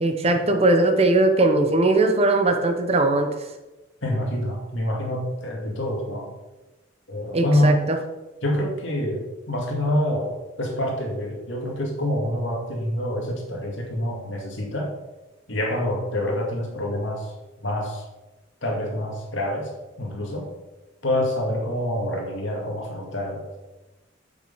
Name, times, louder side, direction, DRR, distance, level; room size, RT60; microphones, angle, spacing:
voice 1, 0.0-3.3 7.3-8.0, right 2 dB, 30° right, 6 dB, 0.8 m, -19 dB
voice 2, 4.0-6.3 7.1-7.8 8.4-14.9 15.5-17.3 17.6-18.0 18.6-19.7 20.0-20.5 21.0-23.4, left 1 dB, 70° left, 0 dB, 2.2 m, -26 dB
7.3 x 6.3 x 5.6 m, 1.1 s
head